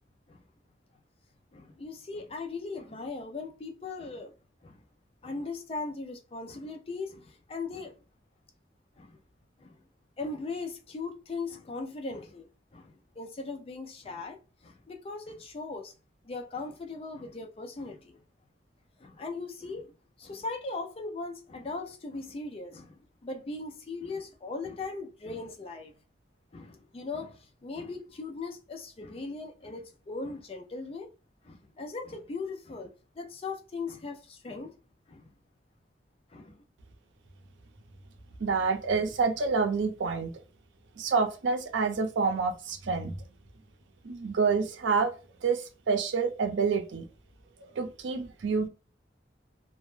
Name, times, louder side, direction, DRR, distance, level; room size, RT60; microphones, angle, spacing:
voice 1, 1.5-4.3 4.6-4.8 5.2-7.9 9.0-9.2 9.6-9.8 10.2-12.5 12.7-15.9 16.2-18.2 19.0-19.9 20.2-25.9 26.5-31.1 31.4-34.7 35.1-35.3 36.3-36.6, left 3 dB, 30° left, 0.3 m, -39 dB
voice 2, 38.4-40.3 41.0-43.1 44.0-45.1 45.4-47.1 47.7-48.7, right 4 dB, 80° right, 0.5 m, -28 dB
2.1 x 2.0 x 3.0 m
head